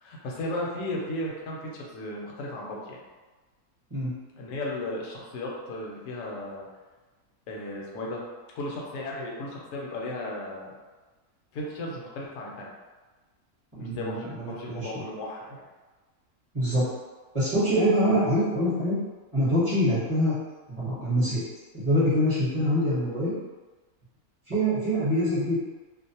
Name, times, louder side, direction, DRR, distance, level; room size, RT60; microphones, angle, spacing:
voice 1, 0.0-3.0 4.3-6.7 7.5-8.2 8.5-10.7 11.5-12.7 13.8-15.6 18.0-18.1, left 1 dB, 65° left, -3 dB, 0.9 m, -35 dB
voice 2, 13.8-15.0 16.5-16.9 17.3-19.0 19.3-20.4 20.7-21.4 21.7-23.4 24.5-25.6, equal, 25° right, -10 dB, 0.9 m, -25 dB
2.5 x 2.0 x 2.8 m, 1.3 s
omnidirectional pair, 1.6 m